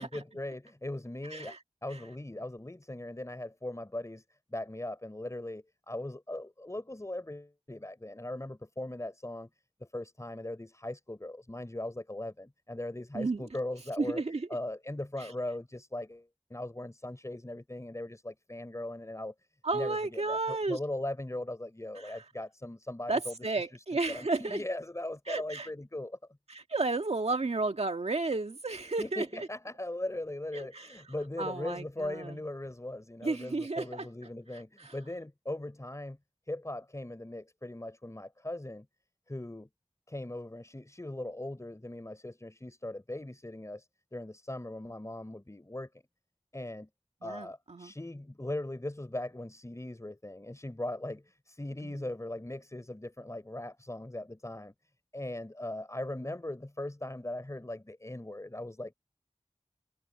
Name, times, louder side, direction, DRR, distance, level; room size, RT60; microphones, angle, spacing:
voice 1, 0.0-1.6 1.8-4.2 4.5-9.5 9.8-14.2 14.5-19.3 19.7-23.3 23.7-26.2 29.0-36.2 36.5-38.9 39.3-39.7 40.1-46.0 46.5-46.9 47.2-54.7 55.1-58.9, left 1 dB, 30° left, 3.6 m, -39 dB
voice 2, 14.0-14.5 19.6-20.8 22.0-22.2 23.1-24.6 25.3-25.7 26.5-29.5 30.5-30.9 31.4-32.4 33.2-34.1 34.5-34.9 47.2-47.9 51.8-51.9, right 3 dB, 80° right, 1.9 m, -33 dB
wide cardioid pair, 55°, 11 cm